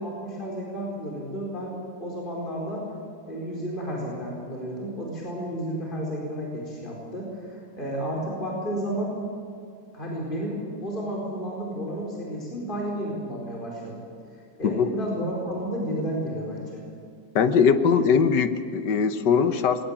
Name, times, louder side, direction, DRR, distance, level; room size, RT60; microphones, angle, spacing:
voice 1, 0.0-2.9 3.3-9.2 9.9-14.0 14.6-16.8, equal, 25° left, -3 dB, 4.7 m, -32 dB
voice 2, 17.3-19.8, left 6 dB, 70° left, 10 dB, 1.7 m, -21 dB
21.0 x 19.0 x 8.9 m, 2.4 s
omnidirectional pair, 1.9 m